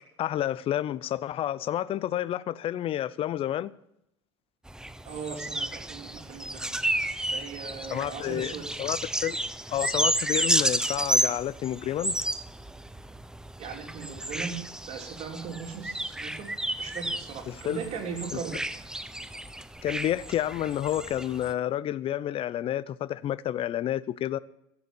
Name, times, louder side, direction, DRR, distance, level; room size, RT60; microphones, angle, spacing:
voice 1, 0.2-3.7 7.9-8.5 8.8-9.4 9.7-12.1 17.5-17.8 18.3-18.4 19.8-24.4, left 12 dB, 45° left, 0.6 m, -30 dB
sound 1, 4.7-21.5, right 1 dB, 5° right, 0.7 m, -32 dB
voice 2, 5.0-6.7 7.3-8.6 13.6-14.6 14.9-16.5 16.8-18.6, right 6 dB, 50° right, 3.4 m, -38 dB
15.5 x 7.0 x 8.2 m
hypercardioid pair, 85°, 14 cm